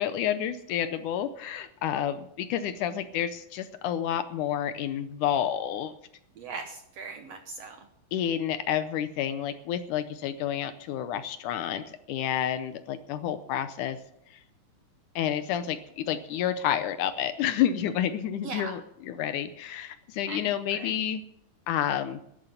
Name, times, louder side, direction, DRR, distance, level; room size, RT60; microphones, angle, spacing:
voice 1, 0.0-5.9 8.1-14.0 15.2-21.2 21.7-22.2, left 10 dB, 75° left, 11 dB, 2.1 m, -29 dB
voice 2, 6.4-7.8 18.4-18.8 20.3-20.9, right 4 dB, 65° right, 6 dB, 1.7 m, -39 dB
11.5 x 11.0 x 8.0 m, 0.75 s
omnidirectional pair, 4.0 m